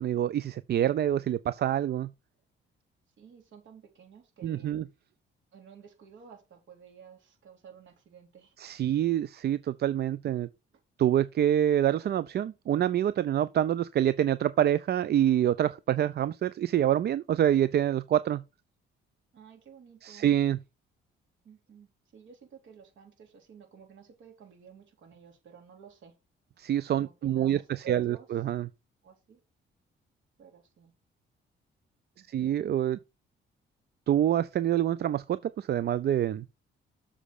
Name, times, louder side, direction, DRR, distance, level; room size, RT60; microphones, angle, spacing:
voice 1, 0.0-2.1 4.4-4.8 8.6-10.5 11.0-18.4 20.0-20.6 26.6-28.7 32.3-33.0 34.1-36.4, right 11 dB, 55° right, 0.5 m, -26 dB
voice 2, 3.2-4.8 5.5-8.6 19.3-20.3 21.4-26.1 26.9-28.3 29.0-29.4 30.4-30.9 32.2-32.5, right 7 dB, 70° right, 3.8 m, -53 dB
7.3 x 5.0 x 6.4 m
cardioid pair, 90°, 20 cm